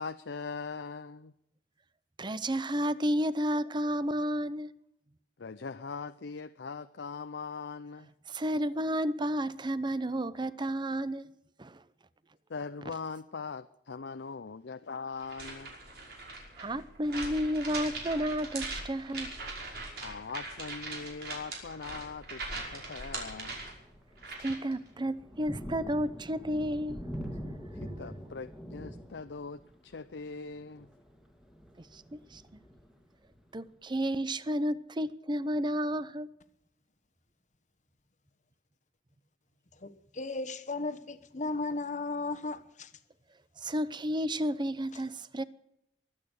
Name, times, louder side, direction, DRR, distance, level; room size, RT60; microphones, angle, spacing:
voice 1, 0.0-1.3 5.4-8.1 12.5-15.8 20.0-23.5 27.7-30.9, left 4 dB, 90° left, 0.6 m, -41 dB
voice 2, 2.2-4.7 8.3-11.3 11.6-11.8 16.6-19.3 24.4-27.0 31.8-32.4 33.5-36.3 43.6-45.4, equal, 25° right, 0.7 m, -31 dB
sound 1, 15.2-24.7, right 3 dB, 65° right, 5.4 m, -41 dB
Thunder, 21.6-21.9 22.5-22.6 23.1-33.7, equal, 5° right, 2.2 m, -45 dB
voice 3, 39.8-42.9, left 3 dB, 45° left, 1.2 m, -35 dB
23.5 x 9.1 x 6.5 m
head